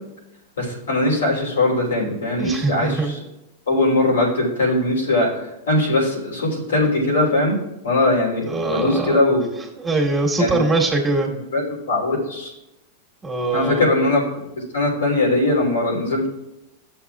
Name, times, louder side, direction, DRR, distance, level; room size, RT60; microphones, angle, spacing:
voice 1, 0.6-3.2 3.7-7.6 7.8-9.5 10.4-10.6 11.5-12.5 13.5-14.2 14.7-16.3, left 2 dB, 90° left, -4 dB, 3.3 m, -20 dB
voice 2, 2.4-3.1 8.4-9.2 9.8-11.3 13.2-13.8, right 3 dB, 15° right, -1 dB, 1.7 m, -22 dB
13.5 x 7.0 x 2.4 m, 0.95 s
hypercardioid pair, 105°, 0 cm